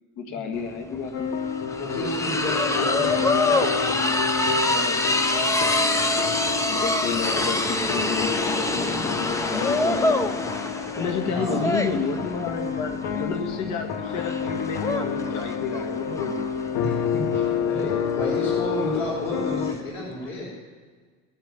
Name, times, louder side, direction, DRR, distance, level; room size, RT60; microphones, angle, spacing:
voice 1, 0.2-1.3 6.7-10.4 11.0-16.4, left 5 dB, 50° left, 3 dB, 1.8 m, -30 dB
sound 1, 0.6-0.7 0.9-19.8, left 2 dB, 10° left, 0.6 m, -26 dB
sound 2, 1.1-19.7, left 6 dB, 75° left, 1.4 m, -29 dB
voice 2, 1.8-4.0 4.5-5.0 11.2-11.7 16.8-20.5, left 1 dB, 30° left, -7 dB, 4.9 m, -31 dB
19.0 x 7.6 x 8.9 m, 1.5 s
cardioid pair, 165°, 37 cm